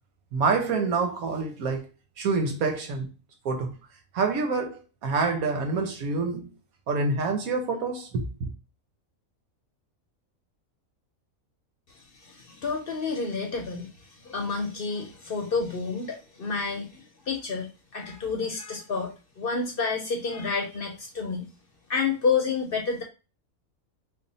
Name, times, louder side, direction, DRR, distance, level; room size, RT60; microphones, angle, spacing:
voice 1, 0.3-1.9 2.2-3.1 3.4-3.7 4.1-6.5 6.9-8.5, right 4 dB, 85° right, 1.3 m, -27 dB
voice 2, 11.9-17.7 17.9-21.5 21.9-23.0, left 4 dB, 55° left, 0.7 m, -29 dB
3.4 x 2.2 x 4.0 m
omnidirectional pair, 1.4 m